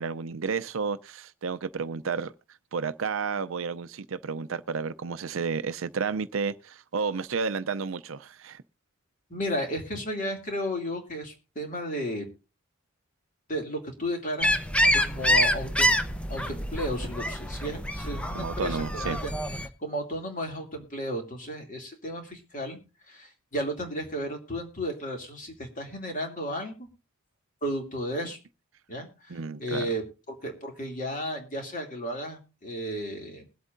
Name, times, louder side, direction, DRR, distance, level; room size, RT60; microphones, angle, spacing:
voice 1, 0.0-2.3 2.7-8.6 18.3-19.2 29.3-29.9, right 5 dB, 65° right, 0.5 m, -31 dB
voice 2, 9.3-12.3 13.5-14.5 14.9-16.0 16.3-19.3 19.8-22.8 23.1-26.9 27.6-28.4 28.9-33.5, equal, 40° left, 2.6 m, -33 dB
sound 1, 14.4-19.7, equal, 5° left, 0.7 m, -26 dB
21.5 x 8.2 x 2.6 m
head